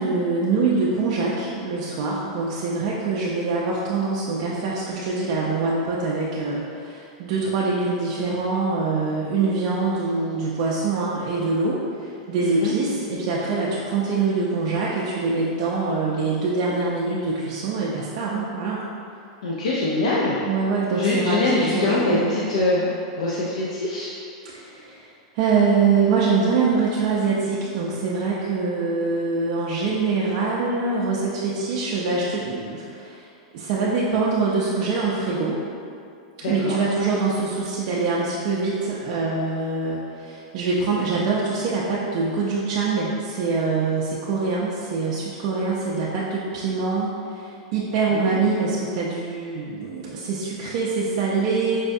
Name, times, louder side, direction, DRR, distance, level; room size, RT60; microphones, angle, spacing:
voice 1, 0.0-18.8 20.5-22.2 24.4-33.2 33.5-35.6 36.5-51.8, right 4 dB, 50° right, -5 dB, 0.4 m, -24 dB
voice 2, 12.4-12.7 19.4-20.4 21.0-22.9 23.2-24.1 36.4-36.8 48.1-48.4, left 2 dB, 90° left, -6 dB, 0.4 m, -23 dB
4.6 x 2.2 x 2.5 m, 2.5 s
supercardioid pair, 150°, 3 cm